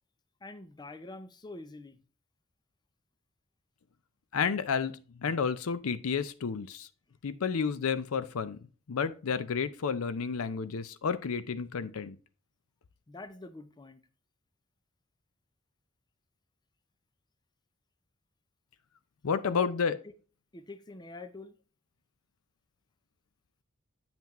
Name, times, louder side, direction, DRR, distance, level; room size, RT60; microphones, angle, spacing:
voice 1, 0.4-2.0 13.1-14.0 19.2-19.7 20.0-20.1 20.5-21.5, left 2 dB, 20° left, 0.5 m, -45 dB
voice 2, 4.3-6.9 7.2-8.6 8.9-12.2 19.2-20.0, left 6 dB, 75° left, 0.5 m, -31 dB
8.9 x 5.7 x 3.0 m
head